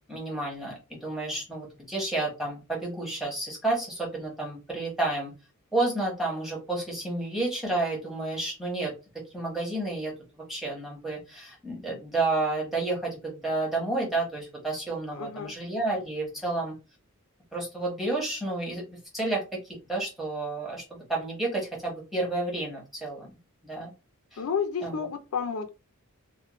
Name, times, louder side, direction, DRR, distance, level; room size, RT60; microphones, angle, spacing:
voice 1, 0.1-5.3 5.7-8.9 9.3-10.1 10.5-16.7 17.5-19.6 19.9-23.3 23.6-23.9 24.3-24.4 24.8-24.9, right 2 dB, ahead, 0.9 m, -30 dB
voice 2, 15.1-15.5 24.4-25.7, left 6 dB, 75° left, 0.4 m, -31 dB
2.4 x 2.1 x 2.9 m
head